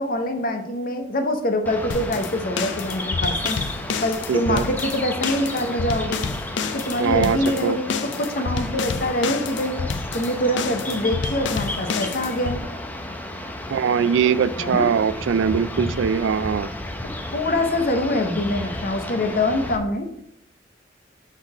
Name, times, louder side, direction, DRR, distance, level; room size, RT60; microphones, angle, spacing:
voice 1, 0.0-6.2 6.7-9.8 10.1-12.6 14.6-14.9 17.0-20.1, left 1 dB, 50° left, 6 dB, 0.9 m, -25 dB
sound 1, 1.6-19.8, left 1 dB, 10° left, 0.6 m, -32 dB
sound 2, 1.9-12.6, left 5 dB, 70° left, 0.5 m, -29 dB
voice 2, 4.3-4.7 7.0-7.8 13.7-16.7, right 7 dB, 85° right, 17 dB, 0.3 m, -21 dB
6.4 x 3.9 x 4.8 m, 0.72 s
head